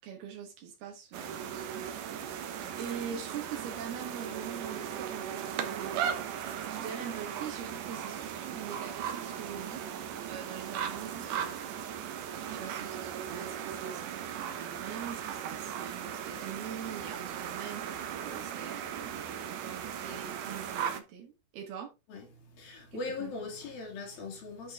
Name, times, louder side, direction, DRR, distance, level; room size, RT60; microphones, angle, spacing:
voice 1, 0.0-6.1 6.7-9.9 10.3-12.1 12.5-21.9 22.9-23.5, right 8 dB, 85° right, 3.7 m, -44 dB
sound 1, 1.1-21.0, right 8 dB, 65° right, 2.4 m, -37 dB
voice 2, 22.1-24.7, left 3 dB, 70° left, 4.6 m, -40 dB
11.0 x 5.6 x 3.7 m
omnidirectional pair, 4.3 m